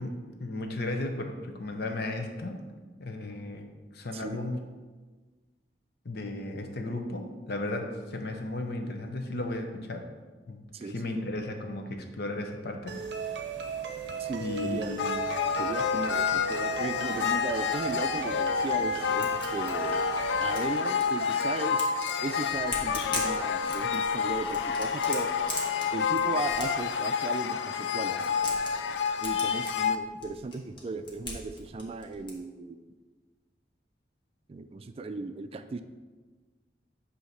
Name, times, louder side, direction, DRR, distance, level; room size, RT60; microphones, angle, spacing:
voice 1, 0.0-2.6 3.0-3.7 3.9-4.6 6.0-10.0 10.5-12.9 14.4-15.2, left 2 dB, 65° left, 4 dB, 0.8 m, -35 dB
voice 2, 10.7-11.3 14.2-15.0 15.6-20.0 20.4-21.9 22.2-25.3 25.9-28.4 29.2-32.8 34.5-35.8, right 3 dB, 35° right, 9 dB, 0.3 m, -36 dB
sound 1, 12.9-20.7, right 6 dB, 80° right, 0.6 m, -36 dB
sound 2, 15.0-30.0, left 6 dB, 80° left, 0.4 m, -29 dB
sound 3, 18.6-27.5 28.0-32.3, left 2 dB, 30° left, 1.2 m, -41 dB
8.2 x 2.8 x 5.8 m, 1.3 s
head